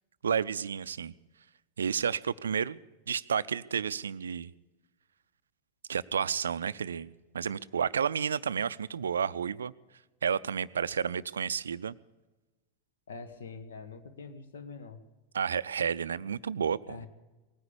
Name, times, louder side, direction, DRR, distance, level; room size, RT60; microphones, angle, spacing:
voice 1, 0.2-1.1 1.8-2.8 3.1-4.5 5.9-9.7 10.2-11.9 15.3-17.0, right 7 dB, 70° right, 17 dB, 0.4 m, -31 dB
voice 2, 13.1-15.0 16.9-17.1, left 4 dB, 65° left, 11 dB, 1.3 m, -44 dB
19.0 x 9.8 x 6.9 m, 1.2 s
figure-of-eight pair, 90°, 0 cm